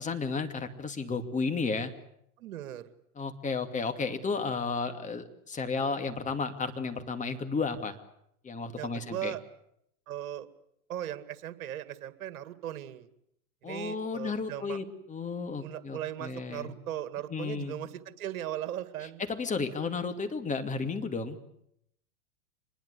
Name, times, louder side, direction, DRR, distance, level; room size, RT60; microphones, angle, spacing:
voice 1, 0.0-1.9 3.2-8.0 8.4-9.3 13.6-16.8 17.3-17.8 19.3-21.4, left 4 dB, 15° left, 7 dB, 2.5 m, -33 dB
voice 2, 2.4-2.9 8.8-9.4 10.1-10.5 10.9-13.1 13.6-14.8 15.6-19.2, right 11 dB, 65° right, 12 dB, 2.2 m, -38 dB
25.5 x 21.0 x 8.3 m, 0.75 s
hypercardioid pair, 115°, 44 cm